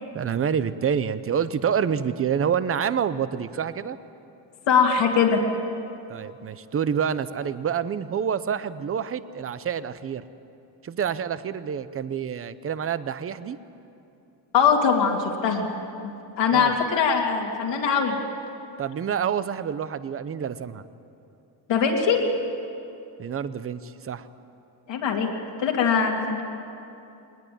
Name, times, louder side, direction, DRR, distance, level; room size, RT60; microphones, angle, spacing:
voice 1, 0.1-4.0 6.1-10.2 10.8-13.6 16.5-16.8 18.8-20.8 23.2-24.3, right 7 dB, 30° right, 14 dB, 0.7 m, -27 dB
voice 2, 4.7-5.4 14.5-15.7 16.4-18.2 21.7-22.2 24.9-25.3 25.6-26.4, left 6 dB, 70° left, 0 dB, 2.7 m, -21 dB
21.0 x 20.0 x 9.3 m, 2.7 s
cardioid pair, 165°, 45 cm